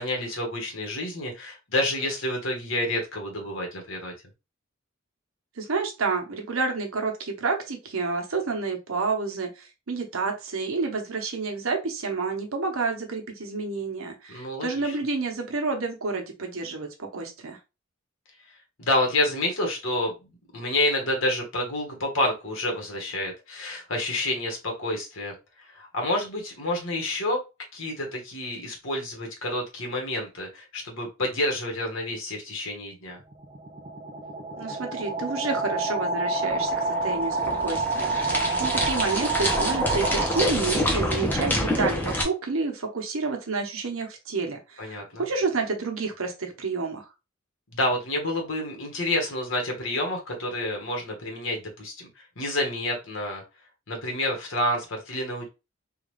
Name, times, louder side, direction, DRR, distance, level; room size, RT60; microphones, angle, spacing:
voice 1, 0.0-4.1 14.3-14.9 18.8-20.1 20.5-27.4 27.7-33.2 38.2-38.6 44.8-45.3 47.7-53.4 53.9-55.5, left 1 dB, 70° left, 1 dB, 1.3 m, -29 dB
voice 2, 5.6-17.6 34.6-47.1, right 4 dB, 85° right, 3 dB, 1.0 m, -29 dB
sound 1, 33.2-41.0, right 3 dB, 30° right, 0.5 m, -28 dB
sound 2, 36.3-42.2, left 1 dB, 10° left, 0.8 m, -27 dB
3.7 x 2.5 x 3.1 m, 0.27 s
head